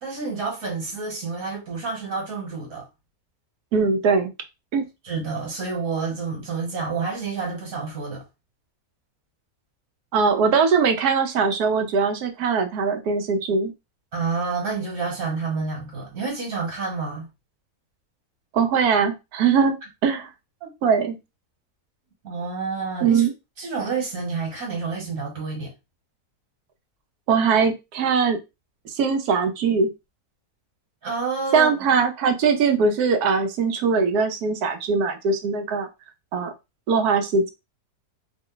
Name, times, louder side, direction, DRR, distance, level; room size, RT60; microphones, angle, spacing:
voice 1, 0.0-2.9 5.0-8.2 14.1-17.3 20.6-20.7 22.2-23.3 23.6-25.7 31.0-31.7, right 4 dB, 60° right, 1.6 m, -29 dB
voice 2, 3.7-4.3 4.7-4.8 10.1-13.7 18.5-19.8 20.0-20.3 20.8-21.2 23.0-23.3 27.3-28.4 28.9-29.9 31.5-35.9 36.3-36.5 36.9-37.5, right 5 dB, 85° right, 1.2 m, -21 dB
3.0 x 2.1 x 3.7 m
omnidirectional pair, 1.6 m